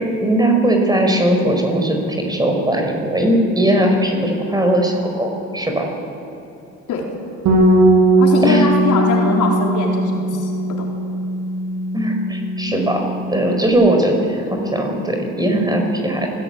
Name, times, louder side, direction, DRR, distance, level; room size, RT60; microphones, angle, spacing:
voice 1, 0.0-5.9 8.4-8.7 11.9-16.3, right 1 dB, 15° right, 3 dB, 5.5 m, -19 dB
Bass guitar, 7.5-13.7, right 1 dB, 85° right, 7.3 m, -18 dB
voice 2, 8.2-10.9, left 4 dB, 80° left, -1 dB, 4.3 m, -21 dB
27.0 x 16.5 x 9.5 m, 2.9 s
cardioid pair, 90°, 30 cm